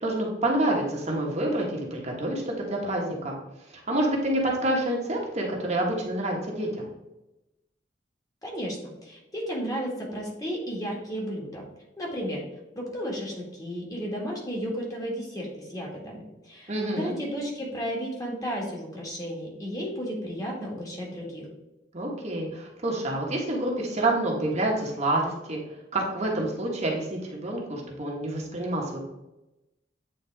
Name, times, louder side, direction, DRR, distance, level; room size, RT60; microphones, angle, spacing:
voice 1, 0.0-3.3 3.7-6.9 16.7-17.2 21.9-25.6 25.9-29.0, right 1 dB, 40° right, -1 dB, 1.3 m, -28 dB
voice 2, 8.4-11.6 12.0-12.4 12.8-21.5, equal, 20° left, -3 dB, 1.8 m, -33 dB
8.7 x 3.9 x 3.4 m, 0.94 s
head